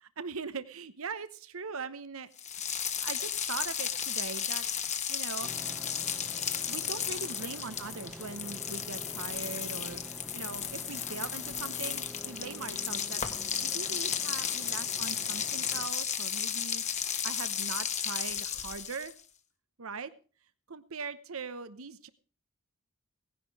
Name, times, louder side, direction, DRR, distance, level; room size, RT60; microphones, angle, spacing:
voice 1, 0.0-2.3 2.7-4.7 5.1-5.5 6.7-10.0 10.3-16.8 17.2-19.1 19.8-20.1 20.7-22.1, right 5 dB, 70° right, 13 dB, 1.0 m, -41 dB
sound 1, 2.4-19.2, left 8 dB, 35° left, 1.4 m, -34 dB
sound 2, 5.4-15.9, equal, 5° right, 1.1 m, -48 dB
17.5 x 11.0 x 4.8 m, 0.39 s
head